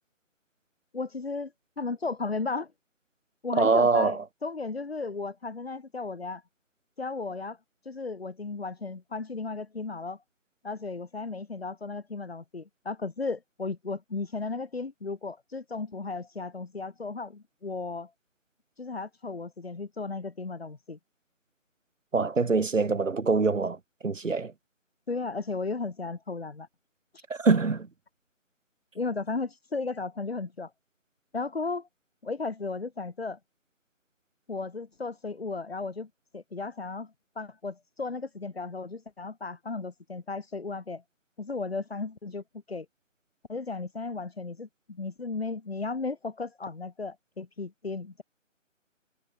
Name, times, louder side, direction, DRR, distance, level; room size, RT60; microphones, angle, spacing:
voice 1, 0.9-2.7 3.4-6.4 7.0-7.6 7.8-10.2 10.6-18.1 18.8-21.0 25.1-26.7 27.1-27.2 28.9-30.7 31.3-31.9 32.2-33.4 34.5-41.0 41.4-42.9 43.5-48.2, left 3 dB, 50° left, 1.7 m, -35 dB
voice 2, 3.5-4.2 22.1-23.8 24.0-24.5 27.3-27.9, right 4 dB, 70° right, 1.9 m, -24 dB
figure-of-eight pair, 180°, 39 cm